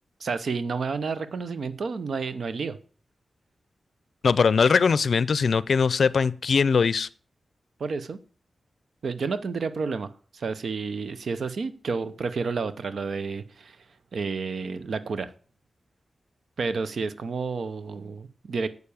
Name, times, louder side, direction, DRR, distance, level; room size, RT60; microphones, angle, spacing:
voice 1, 0.2-2.8 7.8-8.2 9.0-13.8 14.1-15.3 16.6-18.7, right 4 dB, 70° right, 0.7 m, -30 dB
voice 2, 4.2-7.1, left 5 dB, 70° left, 0.5 m, -21 dB
8.2 x 6.7 x 7.0 m
wide cardioid pair, 95°, 0 cm